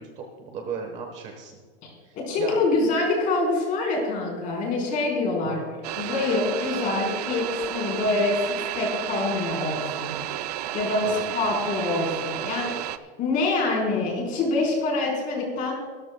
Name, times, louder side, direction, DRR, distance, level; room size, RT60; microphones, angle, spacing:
voice 1, 0.0-1.6 2.0-2.6 5.4-5.8 11.0-11.5, right 5 dB, 25° right, 4 dB, 1.1 m, -36 dB
voice 2, 1.8-5.6 6.0-10.1 10.7-12.8 13.2-15.7, left 3 dB, 25° left, -1 dB, 4.0 m, -25 dB
sound 1, 5.8-13.0, right 13 dB, 40° right, 0.4 m, -32 dB
23.5 x 13.5 x 2.2 m, 1.5 s
supercardioid pair, 175°, 30 cm